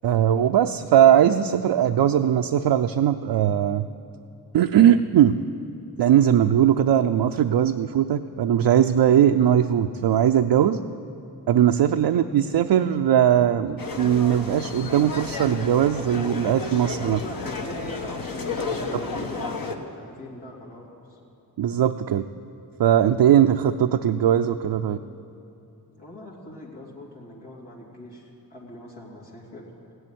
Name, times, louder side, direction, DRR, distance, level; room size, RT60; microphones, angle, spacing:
voice 1, 0.0-3.9 4.5-5.3 6.0-10.8 11.5-17.2 21.6-22.2 22.8-25.0, right 10 dB, 75° right, 5 dB, 0.5 m, -19 dB
sound 1, 13.8-19.8, left 4 dB, 55° left, 1.4 m, -32 dB
voice 2, 17.0-21.2 25.9-29.9, left 1 dB, 75° left, -4 dB, 3.4 m, -42 dB
16.0 x 7.8 x 9.9 m, 2.9 s
cardioid pair, 50°, 41 cm